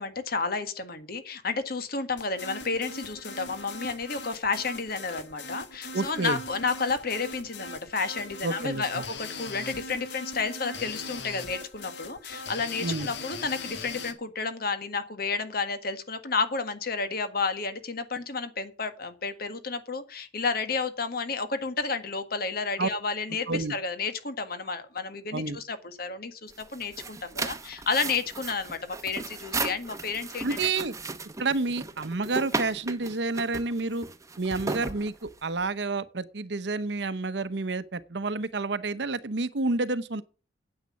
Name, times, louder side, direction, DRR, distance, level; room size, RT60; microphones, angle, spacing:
voice 1, 0.0-30.7, left 4 dB, 55° left, 1.6 m, -31 dB
sound 1, 2.2-14.1, left 3 dB, 75° left, 1.6 m, -40 dB
voice 2, 5.9-6.4 8.4-9.0 12.8-13.1 22.8-22.9 23.5-23.7 25.3-25.6 30.4-30.9 31.4-34.0 34.4-40.2, right 3 dB, 70° right, 0.9 m, -29 dB
sound 2, 26.5-35.6, right 3 dB, 20° right, 0.9 m, -35 dB
9.3 x 8.2 x 7.3 m
head